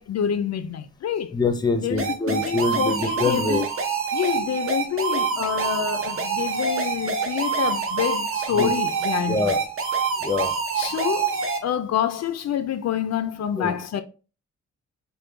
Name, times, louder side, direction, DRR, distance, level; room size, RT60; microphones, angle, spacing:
voice 1, 0.0-1.3 1.8-3.7 4.1-9.4 10.7-14.0, left 9 dB, 60° left, 0.4 m, -27 dB
voice 2, 1.3-3.6 8.5-8.7 9.3-9.6 10.2-10.5 13.6-13.7, left 3 dB, 15° left, 0.6 m, -24 dB
sound 1, 2.0-11.6, right 6 dB, 45° right, 0.8 m, -26 dB
5.1 x 2.2 x 4.3 m
wide cardioid pair, 145°, 29 cm